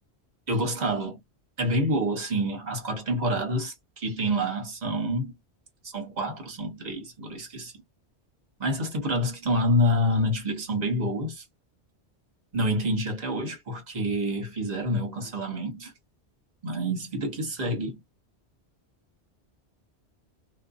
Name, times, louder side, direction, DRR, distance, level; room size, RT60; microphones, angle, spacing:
voice 1, 0.5-1.2 1.6-5.3 5.9-7.7 8.6-11.4 12.5-15.9 16.6-18.0, equal, 40° right, 1.0 m, -27 dB
2.6 x 2.3 x 2.3 m
omnidirectional pair, 1.1 m